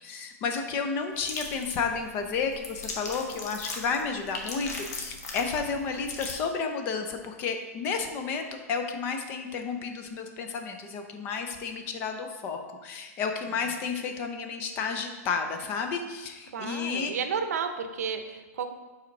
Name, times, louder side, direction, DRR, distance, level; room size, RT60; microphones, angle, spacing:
voice 1, 0.0-17.1, left 5 dB, 25° left, 5 dB, 0.5 m, -32 dB
sound 1, 1.1-6.3, left 3 dB, 85° left, 1.3 m, -39 dB
voice 2, 16.5-18.7, right 6 dB, 75° right, 8 dB, 0.7 m, -32 dB
5.1 x 4.2 x 5.2 m, 1.2 s
hypercardioid pair, 165°, 8 cm